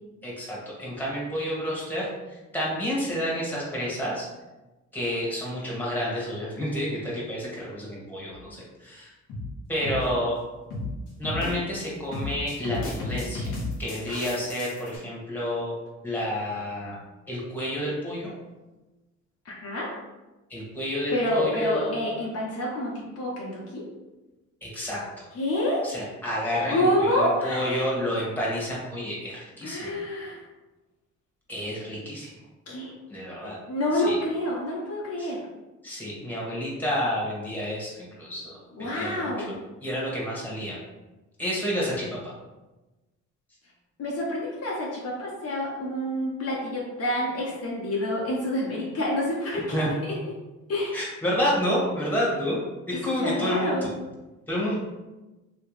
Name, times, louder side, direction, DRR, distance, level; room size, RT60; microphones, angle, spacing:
voice 1, 0.2-4.3 4.9-9.1 9.7-10.3 11.2-13.5 13.8-15.7 16.0-16.9 17.3-18.3 20.5-21.9 24.6-25.2 25.8-30.0 31.5-32.3 33.1-33.6 33.9-34.2 35.2-35.3 35.8-39.5 39.8-40.8 41.4-42.3 49.7-49.9 50.9-53.9 54.5-54.7, equal, 5° left, -6 dB, 1.5 m, -29 dB
sound 1, 8.3-8.6 9.3-9.5 9.8-10.1 10.7-11.0 11.2-11.8 12.1-15.0, left 2 dB, 80° left, 1.1 m, -33 dB
voice 2, 19.4-19.9 21.1-23.8 25.3-25.8 26.7-27.8 29.6-30.4 32.7-32.9 33.4-35.4 38.8-39.6 44.0-49.8 50.0-50.1 50.7-51.0 53.2-53.9, left 1 dB, 55° left, -4 dB, 1.0 m, -28 dB
3.1 x 2.9 x 3.2 m, 1.1 s
cardioid pair, 90°, 30 cm